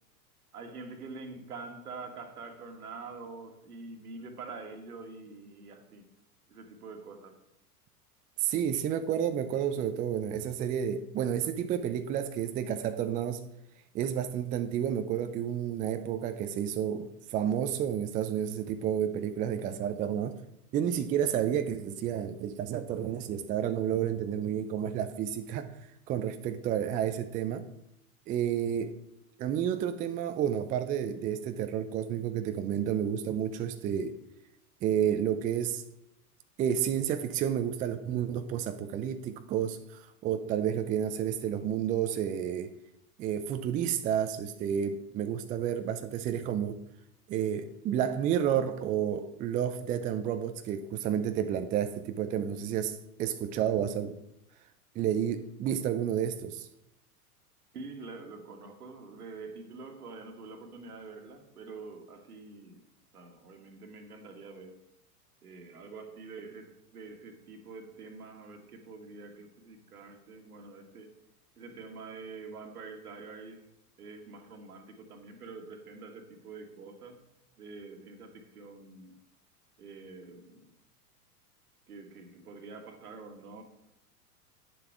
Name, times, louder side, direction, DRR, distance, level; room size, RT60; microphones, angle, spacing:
voice 1, 0.5-6.1 6.5-7.4 57.7-62.8 63.1-64.8 65.4-71.1 71.6-73.7 74.0-77.2 77.6-79.2 79.8-80.7 81.9-83.6, right 4 dB, 75° right, 1.8 m, -46 dB
voice 2, 8.4-13.4 13.9-20.4 20.7-25.7 26.1-27.7 28.3-29.0 29.4-34.2 34.8-35.8 36.6-42.7 43.2-46.8 47.3-54.2 55.0-56.7, right 9 dB, 20° right, 0.4 m, -30 dB
9.2 x 7.0 x 4.6 m
figure-of-eight pair, 95°, 45 cm